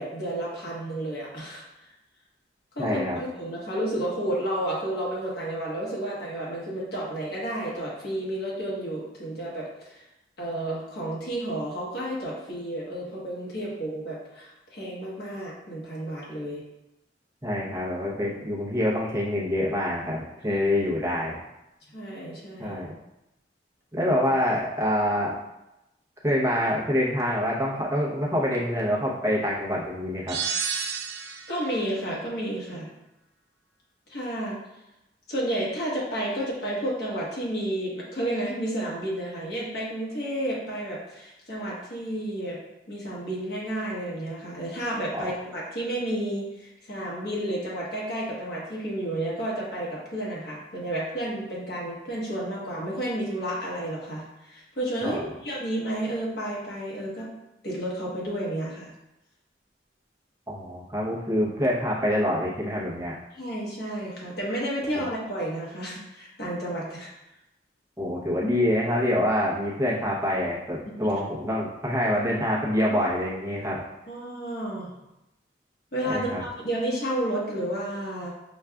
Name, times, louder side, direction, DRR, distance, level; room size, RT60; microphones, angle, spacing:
voice 1, 0.0-1.7 2.7-10.0 10.4-16.6 20.5-20.7 21.9-22.8 31.5-32.9 34.1-34.6 35.3-42.6 42.9-57.3 57.6-58.9 63.3-67.1 71.0-71.1 74.1-74.9 75.9-78.3, right 1 dB, 60° left, -5 dB, 1.1 m, -31 dB
voice 2, 2.8-3.2 17.4-21.4 22.6-22.9 23.9-25.4 26.2-30.4 45.1-45.3 55.0-55.2 60.5-63.2 64.9-65.0 68.0-73.8 76.0-76.4, left 1 dB, 15° right, -5 dB, 0.7 m, -26 dB
sound 1, 30.3-31.7, right 7 dB, 60° right, 0.3 m, -30 dB
6.1 x 2.4 x 2.3 m, 0.92 s
head